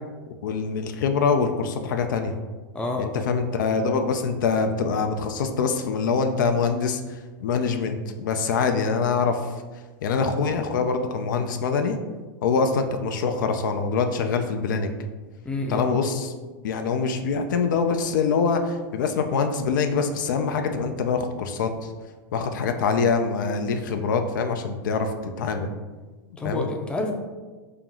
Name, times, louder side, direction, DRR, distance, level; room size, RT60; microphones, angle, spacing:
voice 1, 0.4-2.4 3.0-9.4 10.0-12.0 12.4-14.9 15.7-16.3 16.6-21.7 22.3-25.7 26.4-26.7, left 5 dB, 75° left, 7 dB, 0.4 m, -24 dB
voice 2, 2.7-3.1 15.5-15.9 26.4-27.1, left 2 dB, 10° left, 2 dB, 0.4 m, -28 dB
4.4 x 2.0 x 3.7 m, 1.3 s
hypercardioid pair, 115°, 10 cm